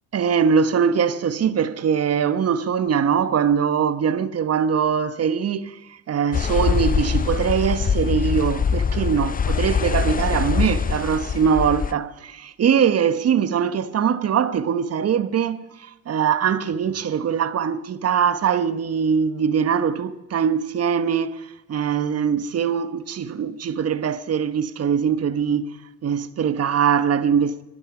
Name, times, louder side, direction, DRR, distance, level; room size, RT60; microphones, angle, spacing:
voice 1, 0.1-5.8 6.1-25.7 26.0-27.6, right 7 dB, 45° right, 1.1 m, -22 dB
sound 1, 6.3-11.9, left 6 dB, 25° left, 0.6 m, -23 dB
23.0 x 12.0 x 4.9 m
supercardioid pair, 65°, 34 cm